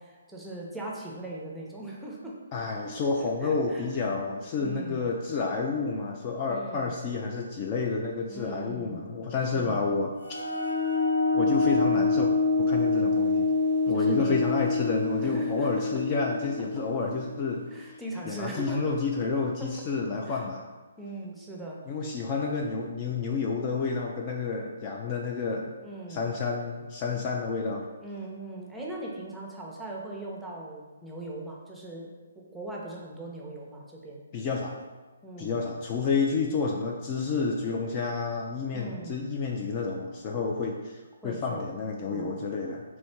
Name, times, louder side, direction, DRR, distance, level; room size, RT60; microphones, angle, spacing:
voice 1, 0.0-2.4 3.2-3.9 4.6-5.0 6.5-6.9 8.3-9.0 9.5-9.8 13.9-14.6 15.2-16.0 17.7-18.9 19.6-19.7 20.3-20.4 21.0-21.8 25.8-26.2 28.0-34.2 35.2-35.6 38.7-39.2 41.2-41.7 42.1-42.5, right 2 dB, 5° right, -3 dB, 0.7 m, -40 dB
voice 2, 2.5-10.1 11.3-12.3 12.6-13.5 13.9-17.6 18.3-20.6 21.9-25.7 26.1-27.8 34.3-34.7 35.4-42.8, left 4 dB, 30° left, 0 dB, 0.4 m, -30 dB
sound 1, 10.2-17.7, left 3 dB, 80° left, 1.1 m, -26 dB
3.1 x 2.7 x 4.4 m, 1.2 s
figure-of-eight pair, 140°, 0 cm